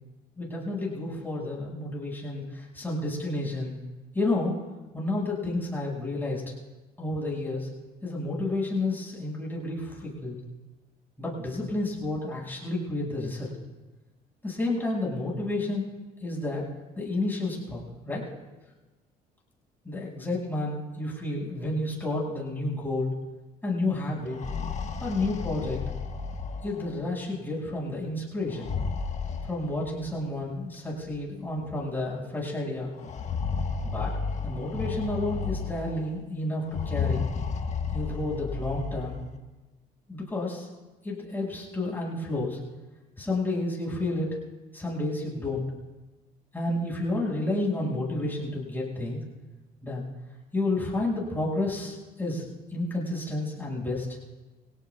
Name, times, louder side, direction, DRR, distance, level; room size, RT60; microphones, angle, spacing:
voice 1, 0.4-3.8 4.1-4.6 4.9-6.4 7.0-7.7 8.0-10.4 11.2-13.5 14.4-15.9 16.2-16.6 17.0-17.8 18.1-18.2 19.8-23.1 23.6-24.4 25.0-25.8 26.6-28.7 29.5-32.9 33.8-34.1 34.4-37.2 37.9-39.2 40.1-40.7 41.0-42.6 43.2-44.4 44.7-45.6 46.5-49.2 49.8-50.1 50.5-52.4 52.7-54.1, left 2 dB, 10° left, -4 dB, 6.3 m, -30 dB
sound 1, 24.2-27.1 28.4-30.1 31.1-31.2 31.6-31.7 33.0-36.1 36.7-39.3, left 5 dB, 45° left, 1.5 m, -32 dB
25.0 x 17.5 x 2.4 m, 1.1 s
cardioid pair, 110°, 17 cm